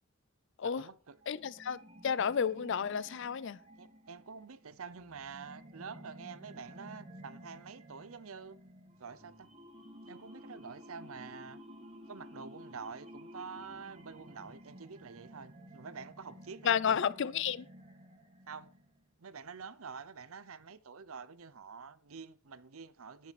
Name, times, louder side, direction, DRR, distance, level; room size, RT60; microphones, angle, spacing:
voice 1, 0.6-1.2 3.8-8.6 9.0-9.5 10.1-11.6 12.1-17.0 18.5-18.7 19.2-23.3, right 5 dB, 90° right, 0.7 m, -47 dB
sound 1, 1.2-19.1, equal, 30° right, 2.4 m, -53 dB
voice 2, 1.3-3.6 16.6-17.7, left 7 dB, 60° left, 0.5 m, -31 dB
10.5 x 10.0 x 4.2 m
head